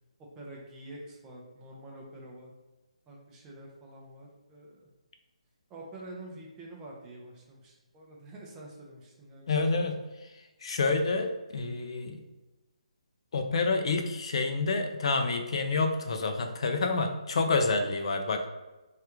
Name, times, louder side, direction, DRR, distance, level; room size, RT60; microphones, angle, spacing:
voice 1, 0.4-2.5 3.1-4.9 5.7-9.6, right 1 dB, 10° right, -2 dB, 0.4 m, -47 dB
voice 2, 9.5-10.0 10.6-12.2 13.3-18.4, left 3 dB, 50° left, 5 dB, 0.3 m, -28 dB
3.3 x 2.3 x 2.9 m, 1.1 s
hypercardioid pair, 165°, 4 cm